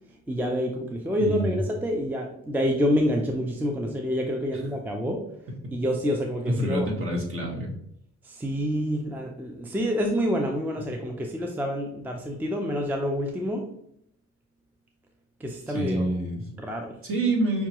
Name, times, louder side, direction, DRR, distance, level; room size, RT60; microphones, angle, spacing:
voice 1, 0.3-5.2 5.7-7.2 8.2-13.6 15.4-16.1 16.6-17.0, equal, 5° right, 2 dB, 0.4 m, -27 dB
voice 2, 1.2-1.6 4.5-4.6 6.5-7.7 15.7-16.4 17.0-17.7, right 1 dB, 45° right, -1 dB, 1.4 m, -27 dB
5.5 x 2.3 x 2.9 m, 0.73 s
cardioid pair, 90°, 30 cm